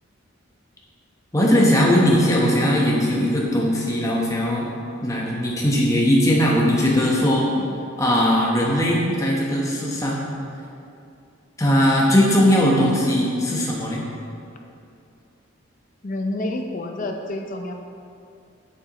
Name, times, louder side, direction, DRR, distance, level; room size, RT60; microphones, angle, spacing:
voice 1, 1.3-4.7 5.0-7.5 8.0-10.2 11.6-14.0, equal, 15° left, -3 dB, 0.9 m, -19 dB
voice 2, 7.4-7.7 16.0-17.7, left 1 dB, 40° left, 4 dB, 0.5 m, -29 dB
7.2 x 7.0 x 2.9 m, 2.5 s
head